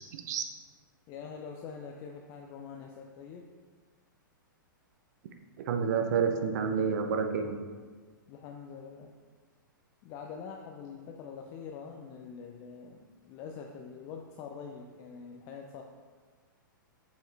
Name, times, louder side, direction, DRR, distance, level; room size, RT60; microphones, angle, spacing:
voice 1, 0.1-0.4 5.7-7.6, right 6 dB, 55° right, 6 dB, 0.7 m, -29 dB
voice 2, 1.1-3.5 8.3-9.1 10.0-15.8, left 6 dB, 35° left, 2 dB, 0.5 m, -44 dB
7.0 x 4.3 x 3.4 m, 1.5 s
figure-of-eight pair, 110°, 11 cm